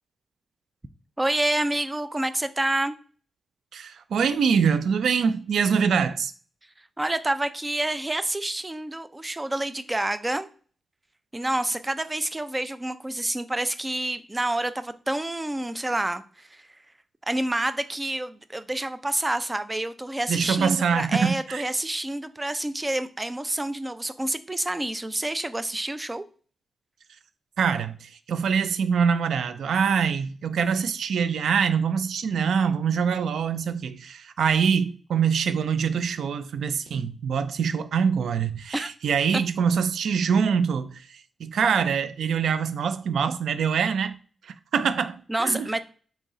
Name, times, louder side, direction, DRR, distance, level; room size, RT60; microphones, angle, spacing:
voice 1, 1.2-3.0 7.0-10.5 11.3-16.7 17.3-26.2 38.7-38.9 45.3-45.8, right 1 dB, 15° right, 0.4 m, -28 dB
voice 2, 3.7-6.3 20.3-21.6 27.6-41.0 41.4-44.1 44.4-45.7, right 6 dB, 90° right, 0.3 m, -24 dB
3.9 x 3.0 x 3.8 m
wide cardioid pair, 100°, 0 cm